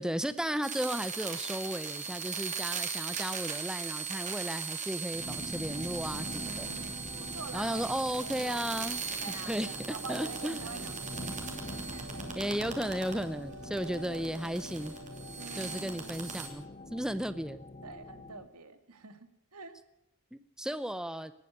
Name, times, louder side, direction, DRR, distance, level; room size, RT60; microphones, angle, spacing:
voice 1, 0.0-6.7 7.5-9.0 9.5-10.7 12.3-14.9 15.5-16.7 16.9-17.7 20.3-21.3, equal, 5° right, 13 dB, 0.6 m, -35 dB
sound 1, 0.6-13.2 13.5-16.5, right 6 dB, 35° right, 2.8 m, -39 dB
sound 2, 5.1-18.5, left 2 dB, 30° left, 0.9 m, -44 dB
sound 3, 6.0-15.5, right 2 dB, 55° right, 1.7 m, -50 dB
voice 2, 6.1-6.9 7.3-8.7 9.2-12.5 13.7-14.3 15.4-16.4 17.8-19.7, right 4 dB, 90° right, 10 dB, 1.9 m, -46 dB
19.5 x 9.2 x 8.0 m, 0.84 s
head